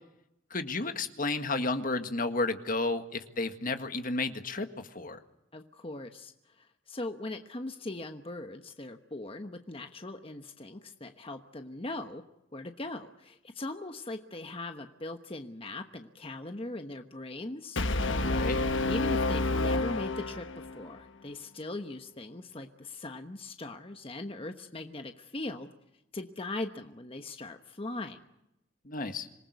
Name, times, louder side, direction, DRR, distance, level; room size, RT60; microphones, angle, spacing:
voice 1, 0.5-5.2 18.2-18.6 28.9-29.3, left 3 dB, 45° left, 8 dB, 1.7 m, -32 dB
voice 2, 5.5-12.2 12.5-17.8 18.9-25.7 26.1-28.2, left 2 dB, 30° left, 6 dB, 1.1 m, -40 dB
Brass instrument, 17.8-20.8, left 2 dB, 75° left, 1.2 m, -29 dB
26.5 x 19.0 x 8.2 m, 0.87 s
head